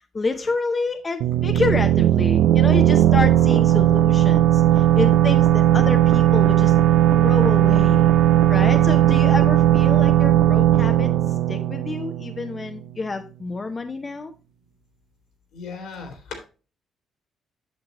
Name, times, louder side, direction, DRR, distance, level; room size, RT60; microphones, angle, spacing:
voice 1, 0.1-6.7 7.1-8.1 8.5-11.1 11.5-14.3, left 3 dB, 30° left, 6 dB, 0.7 m, -28 dB
sound 1, 1.2-12.7, right 12 dB, 85° right, 0.4 m, -17 dB
voice 2, 15.5-16.5, left 5 dB, 80° left, 4 dB, 2.8 m, -36 dB
8.1 x 6.8 x 2.9 m, 0.34 s
cardioid pair, 90°, 0 cm